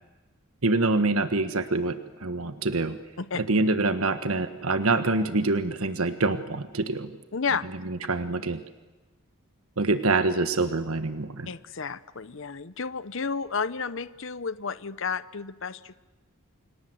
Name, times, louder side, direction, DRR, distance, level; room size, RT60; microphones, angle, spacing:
voice 1, 0.6-3.0 3.4-7.2 7.8-8.6 9.8-11.5, right 3 dB, 80° right, 10 dB, 1.4 m, -25 dB
voice 2, 7.3-7.7 11.5-16.0, left 5 dB, 60° left, 14 dB, 0.8 m, -31 dB
29.5 x 25.0 x 7.9 m, 1.2 s
head